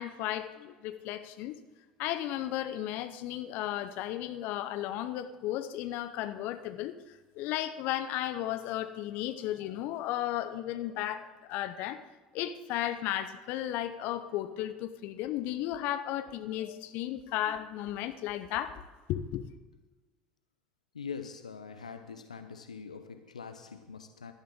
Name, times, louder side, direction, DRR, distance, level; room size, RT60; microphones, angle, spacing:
voice 1, 0.0-1.6 2.0-6.9 7.3-12.0 12.3-18.8 19.1-19.5, left 12 dB, 55° left, 11 dB, 0.9 m, -34 dB
voice 2, 20.9-24.3, left 6 dB, 85° left, 9 dB, 0.7 m, -43 dB
18.0 x 12.0 x 3.8 m, 1.2 s
figure-of-eight pair, 70°, 4 cm